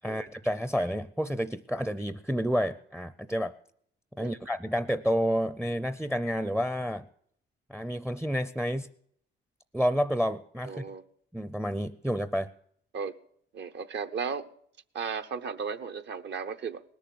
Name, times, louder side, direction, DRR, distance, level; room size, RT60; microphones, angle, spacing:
voice 1, 0.0-3.5 4.2-7.1 7.7-8.9 9.7-10.8 11.3-12.5, equal, 5° right, 15 dB, 0.5 m, -29 dB
voice 2, 10.6-11.0 12.9-13.2 13.5-14.5 14.9-16.8, right 6 dB, 60° right, 10 dB, 0.9 m, -35 dB
19.5 x 7.1 x 7.7 m, 0.67 s
cardioid pair, 90°, 20 cm